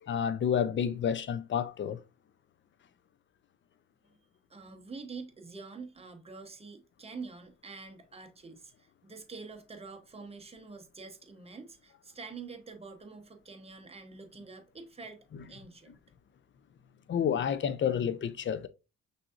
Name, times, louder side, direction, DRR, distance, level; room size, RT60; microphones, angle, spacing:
voice 1, 0.0-2.0 17.1-18.7, left 8 dB, 40° left, 0.5 m, -29 dB
voice 2, 4.5-16.0, right 4 dB, 20° right, 0.9 m, -46 dB
5.9 x 2.8 x 2.4 m
cardioid pair, 90°, 30 cm